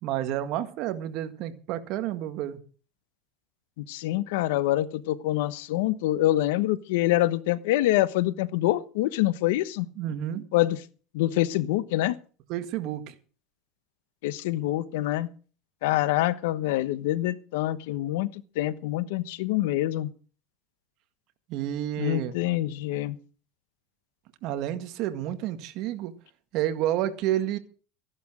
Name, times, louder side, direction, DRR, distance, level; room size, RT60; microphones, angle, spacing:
voice 1, 0.0-2.6 10.0-10.4 12.5-13.1 21.5-22.3 24.4-26.1 26.5-27.6, right 12 dB, 55° right, 9 dB, 1.9 m, -30 dB
voice 2, 3.8-9.9 10.5-10.8 11.1-12.2 14.2-15.3 15.8-20.1 22.0-23.2, left 15 dB, 90° left, 16 dB, 1.1 m, -26 dB
14.5 x 11.0 x 6.3 m, 0.40 s
cardioid pair, 140°, 0 cm